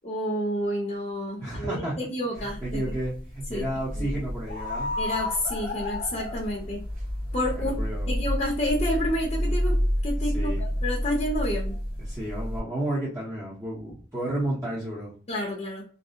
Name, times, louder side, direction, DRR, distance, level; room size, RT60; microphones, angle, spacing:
voice 1, 0.0-2.8 3.5-3.7 4.0-4.1 5.0-6.9 7.3-9.8 10.0-11.8 15.3-15.8, left 1 dB, 35° left, -2 dB, 0.7 m, -29 dB
voice 2, 1.4-2.0 2.4-4.9 7.5-8.1 10.2-10.6 12.0-15.1, right 1 dB, 15° right, -8 dB, 0.8 m, -32 dB
sound 1, 2.4-12.6, equal, 55° right, 1.4 m, -29 dB
2.7 x 2.0 x 2.4 m, 0.42 s
head